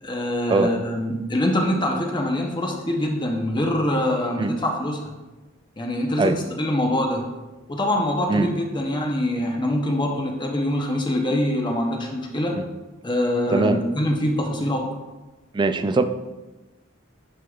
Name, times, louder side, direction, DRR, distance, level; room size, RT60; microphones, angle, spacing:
voice 1, 0.0-5.1 5.8-7.2 7.7-12.5 13.0-14.9, left 1 dB, 25° left, 1 dB, 0.7 m, -24 dB
voice 2, 15.5-16.0, right 3 dB, 25° right, 10 dB, 0.3 m, -20 dB
9.8 x 4.6 x 2.4 m, 1.1 s
head